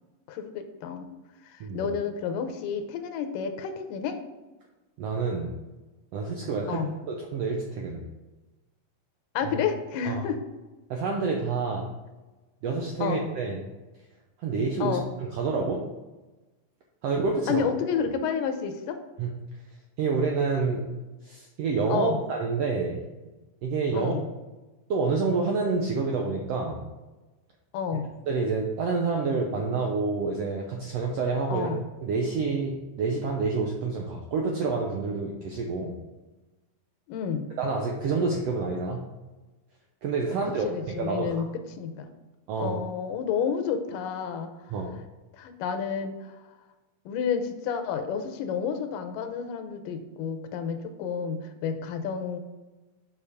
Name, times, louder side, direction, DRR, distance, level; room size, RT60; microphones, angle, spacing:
voice 1, 0.3-1.1 1.4-4.2 6.7-6.9 9.3-10.4 13.0-13.2 14.8-15.1 17.5-19.0 21.9-22.2 23.9-24.2 27.7-28.1 31.5-31.8 37.1-37.5 40.6-42.1 42.6-44.5 45.3-46.4 47.1-52.4, left 7 dB, 85° left, 7 dB, 2.4 m, -30 dB
voice 2, 5.0-5.5 6.1-8.0 9.4-9.5 10.1-10.2 10.9-11.9 12.6-13.6 14.4-15.0 15.3-15.8 17.0-17.7 19.2-19.3 20.0-20.8 21.2-23.0 23.6-24.1 24.9-26.8 28.3-31.7 32.0-35.9 37.6-39.1 40.0-41.3 42.5-42.8 44.7-44.9, right 4 dB, 80° right, 0 dB, 1.4 m, -28 dB
8.4 x 5.3 x 3.5 m, 1.1 s
omnidirectional pair, 3.8 m